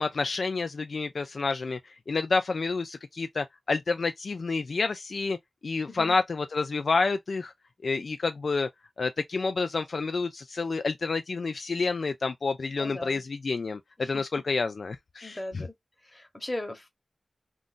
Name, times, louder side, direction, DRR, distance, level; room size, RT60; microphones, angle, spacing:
voice 1, 0.0-5.4 5.6-7.5 7.8-8.7 9.0-15.6, left 4 dB, 65° left, 0.3 m, -29 dB
voice 2, 12.8-13.2 14.0-14.2 15.2-15.7 16.0-16.9, left 1 dB, 20° left, 1.0 m, -38 dB
2.5 x 2.5 x 3.6 m
wide cardioid pair, 100°, 0 cm